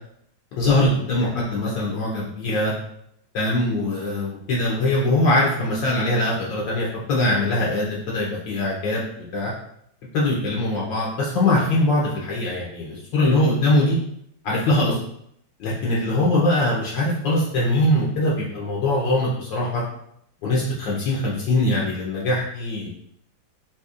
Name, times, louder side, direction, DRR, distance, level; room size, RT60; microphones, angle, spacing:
voice 1, 0.5-2.7 3.3-9.1 9.3-9.5 10.1-14.0 14.4-15.0 15.6-19.8 20.4-22.9, left 1 dB, 70° left, -4 dB, 1.3 m, -22 dB
4.2 x 2.8 x 2.4 m, 0.71 s
omnidirectional pair, 2.2 m